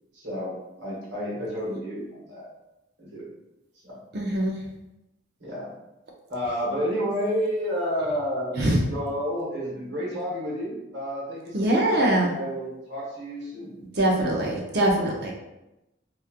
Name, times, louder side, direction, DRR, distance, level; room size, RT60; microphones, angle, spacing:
voice 1, 0.1-2.5 3.0-3.3 3.8-4.0 5.4-5.7 6.3-13.8, equal, 70° right, -7 dB, 1.2 m, -30 dB
voice 2, 4.1-4.5 8.5-8.8 11.5-12.3 14.0-15.3, right 1 dB, 55° right, -1 dB, 0.6 m, -22 dB
3.0 x 2.4 x 2.4 m, 0.95 s
head